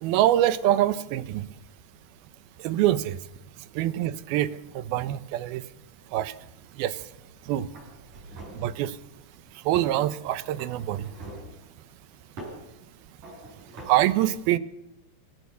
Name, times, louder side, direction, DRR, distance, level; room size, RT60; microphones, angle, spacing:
voice 1, 0.0-1.5 2.6-3.2 3.8-4.5 4.9-5.6 6.1-6.3 6.8-7.0 7.5-7.7 8.6-8.9 9.7-11.1 13.9-14.6, right 13 dB, 75° right, 14 dB, 2.7 m, -24 dB
sound 1, 7.2-7.4 7.7-8.7 9.7-10.0 10.6-11.5 12.4-12.6 13.2-13.9, right 2 dB, 50° right, 8.7 m, -42 dB
27.0 x 15.0 x 6.9 m, 0.84 s
omnidirectional pair, 4.5 m